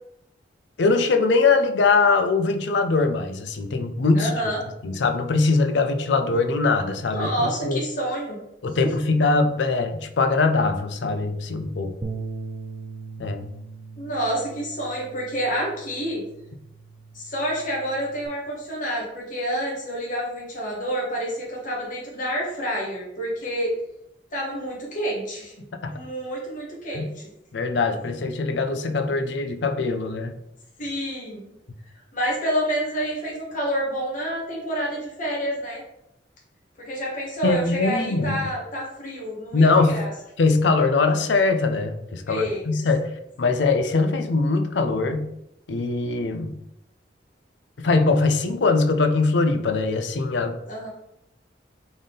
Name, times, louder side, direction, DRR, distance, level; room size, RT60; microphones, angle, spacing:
voice 1, 0.8-4.3 4.8-7.8 8.6-11.9 13.2-13.5 25.8-25.9 26.9-27.1 27.5-30.3 37.4-38.4 39.5-40.0 40.4-43.1 43.4-45.3 45.7-46.5 47.8-50.6, left 3 dB, 65° left, 8 dB, 0.5 m, -22 dB
voice 2, 4.1-4.6 7.1-8.4 8.8-8.9 14.0-16.2 17.1-23.7 24.3-25.5 25.9-27.3 30.8-31.5 32.1-35.8 36.8-40.1 42.3-42.7 50.7-50.9, equal, 45° left, -3 dB, 1.3 m, -28 dB
Bass guitar, 12.0-18.3, right 4 dB, 30° right, 0.4 m, -39 dB
4.0 x 3.5 x 3.8 m, 0.82 s
head